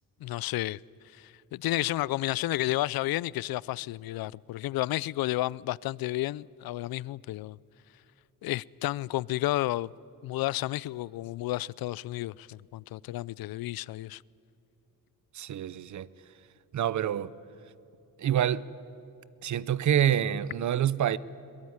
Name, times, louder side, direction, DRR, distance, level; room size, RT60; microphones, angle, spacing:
voice 1, 0.2-0.8 1.2-7.6 8.4-9.9 10.2-14.2, left 16 dB, 90° left, 0.5 m, -31 dB
voice 2, 15.3-16.1 16.7-17.3 18.2-18.7 19.4-21.2, right 10 dB, 55° right, 0.7 m, -27 dB
22.5 x 21.5 x 9.6 m
wide cardioid pair, 145°, 35 cm